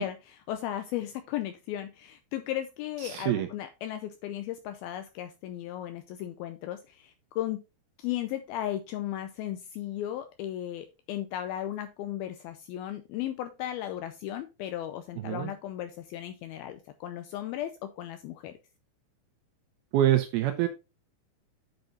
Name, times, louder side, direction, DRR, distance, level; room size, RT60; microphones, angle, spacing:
voice 1, 0.0-7.6 8.0-18.5, left 12 dB, 80° left, 8 dB, 2.3 m, -36 dB
voice 2, 3.0-3.5 15.2-15.5 19.9-20.7, right 12 dB, 75° right, 7 dB, 2.5 m, -25 dB
9.3 x 5.3 x 3.8 m, 0.28 s
omnidirectional pair, 4.7 m